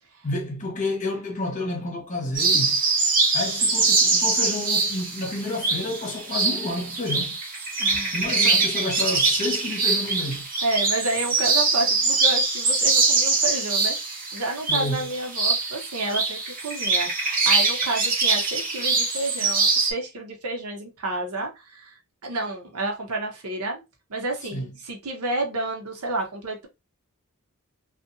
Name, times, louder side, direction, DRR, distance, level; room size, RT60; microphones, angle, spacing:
voice 1, 0.2-2.8 3.3-7.4 8.1-10.5 14.7-15.1 24.5-24.7, left 2 dB, 35° left, 1.1 m, -30 dB
sound 1, 2.4-19.9, right 4 dB, 40° right, 0.8 m, -23 dB
voice 2, 7.8-8.2 8.4-8.5 10.6-23.8 24.1-26.7, right 2 dB, 85° right, 0.9 m, -30 dB
2.7 x 2.4 x 2.6 m
head